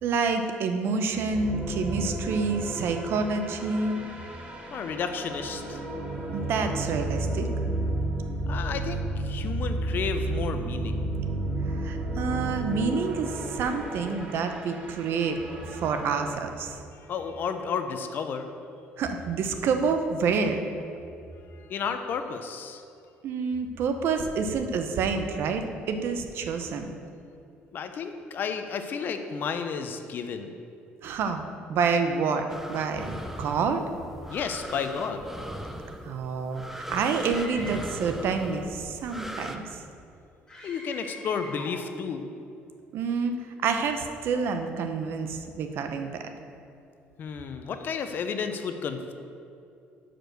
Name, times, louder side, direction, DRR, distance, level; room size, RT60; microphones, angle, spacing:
voice 1, 0.0-4.0 6.3-7.5 11.8-15.4 15.7-16.8 19.0-20.6 23.2-26.9 31.0-31.4 31.7-33.8 36.0-36.6 36.9-39.6 42.9-46.2, right 5 dB, 65° right, 6 dB, 0.7 m, -28 dB
sound 1, 1.3-16.3, right 2 dB, 25° right, 1.1 m, -32 dB
voice 2, 4.7-5.8 8.5-11.1 17.1-18.5 21.5-22.8 27.7-30.6 34.3-35.2 40.6-42.3 47.2-49.1, left 6 dB, 50° left, 7 dB, 0.6 m, -32 dB
sound 2, 32.5-39.6, right 1 dB, 5° right, 0.5 m, -39 dB
Screaming, 37.2-38.1 40.5-41.8, left 1 dB, 15° left, 1.6 m, -43 dB
6.1 x 5.1 x 6.5 m, 2.6 s
cardioid pair, 115°, 4 cm